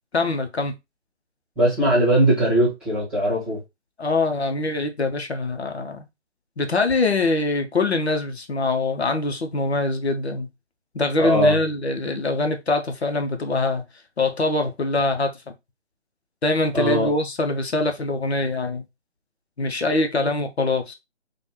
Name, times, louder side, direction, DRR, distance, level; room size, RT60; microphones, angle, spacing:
voice 1, 0.1-0.7 4.0-6.1 6.6-10.5 10.9-13.8 14.2-15.3 16.4-18.8 19.6-20.9, left 2 dB, 65° left, 0.9 m, -23 dB
voice 2, 1.6-3.6 11.2-11.6 16.7-17.1, equal, 5° right, 1.1 m, -19 dB
5.0 x 2.3 x 3.0 m
figure-of-eight pair, 150°, 35 cm